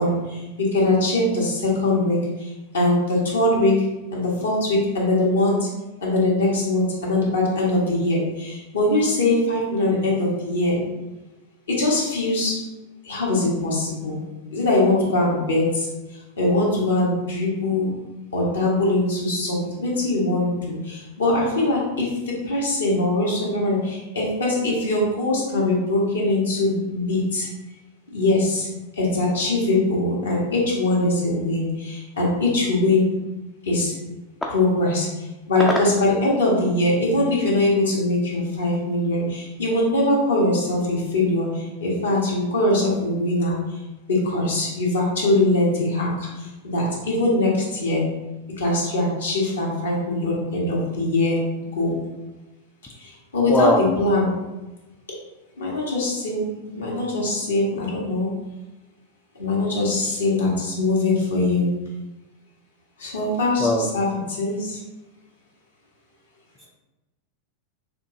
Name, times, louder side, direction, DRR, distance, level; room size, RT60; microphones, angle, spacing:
voice 1, 0.0-3.8 4.1-5.7 6.0-10.8 11.7-12.6 13.0-14.2 14.5-15.9 16.4-17.9 18.3-27.5 28.1-28.7 28.9-33.1 33.6-33.9 34.5-43.8 44.1-48.0 48.6-51.4 51.7-51.9 53.0-54.3 55.6-56.5 56.7-58.3 59.3-61.7 63.0-64.8, left 2 dB, 70° left, -4 dB, 1.4 m, -22 dB
voice 2, 53.5-53.8 63.6-63.9 66.6-66.7, left 2 dB, 10° left, -1 dB, 0.5 m, -19 dB
6.5 x 2.7 x 2.6 m, 1.1 s
figure-of-eight pair, 90°, 0 cm